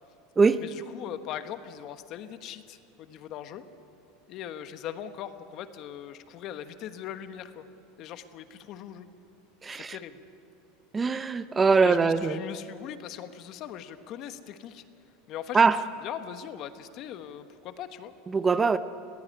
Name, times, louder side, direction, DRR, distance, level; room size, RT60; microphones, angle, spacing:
voice 1, 0.6-3.6 4.3-7.7 8.0-9.1 9.8-10.2 11.8-14.8 15.3-15.7 16.0-18.1, left 10 dB, 50° left, 10 dB, 1.3 m, -40 dB
voice 2, 9.6-10.0 10.9-12.4 15.5-15.8 18.3-18.8, right 4 dB, 20° right, 13 dB, 0.6 m, -22 dB
20.5 x 16.0 x 9.7 m, 2.6 s
supercardioid pair, 125°, 0 cm